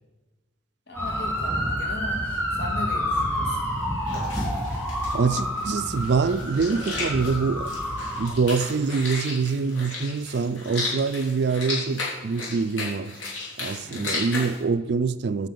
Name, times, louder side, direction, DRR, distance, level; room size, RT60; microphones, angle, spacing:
voice 1, 0.9-2.2 2.5-3.7 13.8-14.2, left 2 dB, 55° left, 2.2 m, -37 dB
sound 1, 0.9-8.3, equal, 10° left, 3.0 m, -28 dB
sound 2, 4.1-14.6, left 3 dB, 75° left, 3.5 m, -34 dB
voice 2, 5.1-7.7 8.2-13.1 13.6-15.5, right 4 dB, 55° right, 0.4 m, -25 dB
9.0 x 5.8 x 7.6 m
head